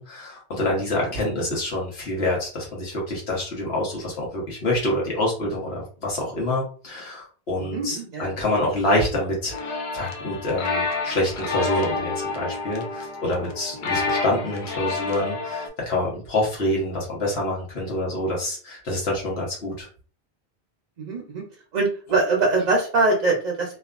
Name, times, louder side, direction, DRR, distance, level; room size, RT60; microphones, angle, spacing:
voice 1, 0.0-19.9, left 1 dB, 75° left, -3 dB, 1.2 m, -26 dB
voice 2, 7.6-8.4 21.0-21.4 21.7-23.8, right 3 dB, 50° right, -1 dB, 0.6 m, -23 dB
sound 1, 9.5-15.7, left 3 dB, 55° left, 0.6 m, -29 dB
2.7 x 2.3 x 2.4 m, 0.40 s
omnidirectional pair, 1.1 m